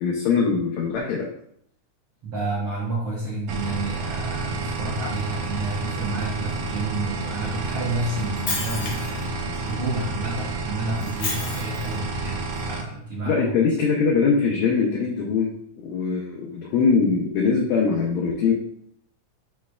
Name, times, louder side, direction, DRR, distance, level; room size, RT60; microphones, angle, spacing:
voice 1, 0.0-1.3 13.2-15.5 15.8-18.5, left 5 dB, 80° left, -1 dB, 1.7 m, -22 dB
voice 2, 2.2-13.5, right 2 dB, 60° right, -7 dB, 1.5 m, -30 dB
sound 1, 3.5-12.8, right 3 dB, 90° right, 2.2 m, -30 dB
Shatter, 8.2-9.2 11.0-12.0, left 3 dB, 60° left, 1.7 m, -31 dB
6.4 x 3.2 x 2.3 m, 0.69 s
omnidirectional pair, 3.5 m